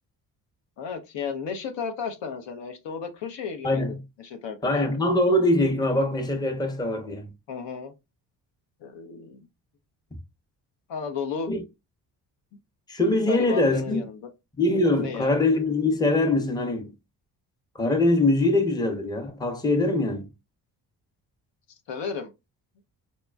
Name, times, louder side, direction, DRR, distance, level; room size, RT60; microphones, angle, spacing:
voice 1, 0.8-3.9 4.2-4.8 7.5-7.9 8.8-9.5 10.9-11.5 13.3-14.3 15.0-15.3 21.9-22.3, left 6 dB, 60° left, 0.8 m, -33 dB
voice 2, 3.6-4.0 4.6-7.3 11.5-11.6 12.9-14.0 14.6-16.9 17.7-20.3, left 2 dB, 10° left, 0.8 m, -23 dB
4.2 x 2.2 x 2.2 m
hypercardioid pair, 50°, 50 cm